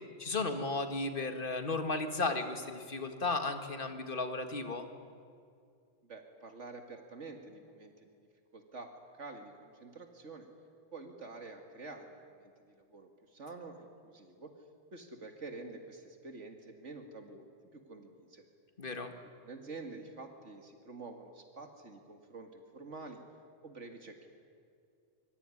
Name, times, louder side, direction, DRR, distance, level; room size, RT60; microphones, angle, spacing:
voice 1, 0.2-4.9 18.8-19.1, left 3 dB, 45° left, 7 dB, 2.2 m, -34 dB
voice 2, 6.0-8.3 8.5-10.5 10.9-14.5 14.9-18.4 19.2-23.2 23.6-24.3, right 3 dB, 80° right, 5 dB, 2.5 m, -48 dB
25.5 x 23.0 x 9.9 m, 2.3 s
omnidirectional pair, 1.2 m